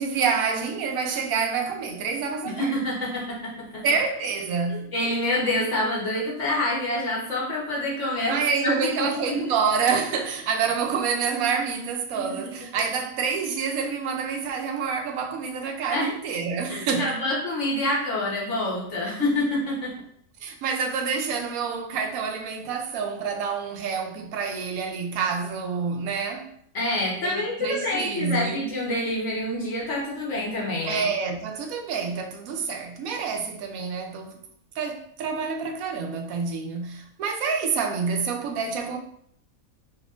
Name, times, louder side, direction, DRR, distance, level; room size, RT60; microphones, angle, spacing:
voice 1, 0.0-2.7 3.8-4.9 8.3-17.2 20.4-26.5 27.2-28.6 30.8-34.4 34.8-39.0, right 5 dB, 85° right, 1.1 m, -27 dB
voice 2, 2.4-3.8 4.7-8.4 8.6-9.1 9.4-9.5 12.1-12.5 15.9-16.1 16.7-20.0 26.7-31.0, left 1 dB, 60° left, 1.4 m, -27 dB
4.2 x 3.0 x 2.4 m
omnidirectional pair, 1.4 m